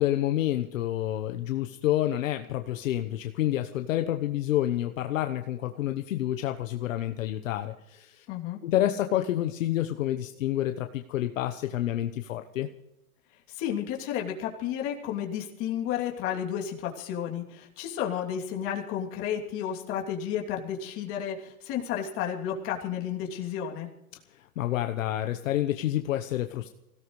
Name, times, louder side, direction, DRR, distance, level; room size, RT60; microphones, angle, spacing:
voice 1, 0.0-8.3 8.6-12.7 24.6-26.7, left 13 dB, 65° left, 7 dB, 1.1 m, -28 dB
voice 2, 8.3-8.6 13.5-23.9, left 9 dB, 30° left, 0 dB, 2.9 m, -32 dB
24.0 x 17.0 x 3.2 m, 0.90 s
hypercardioid pair, 155°, 43 cm